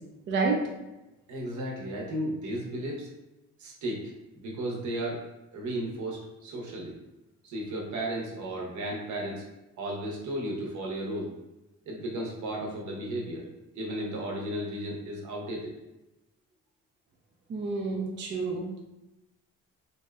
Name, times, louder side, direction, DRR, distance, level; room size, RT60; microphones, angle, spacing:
voice 1, 0.3-0.6 17.5-18.8, right 4 dB, 40° right, 0 dB, 0.5 m, -29 dB
voice 2, 1.3-3.1 3.6-5.2 5.5-6.9 7.4-9.5 9.8-11.3 11.9-15.7, right 1 dB, 70° right, -1 dB, 0.7 m, -34 dB
2.6 x 2.2 x 2.2 m, 0.98 s
cardioid pair, 90°, 30 cm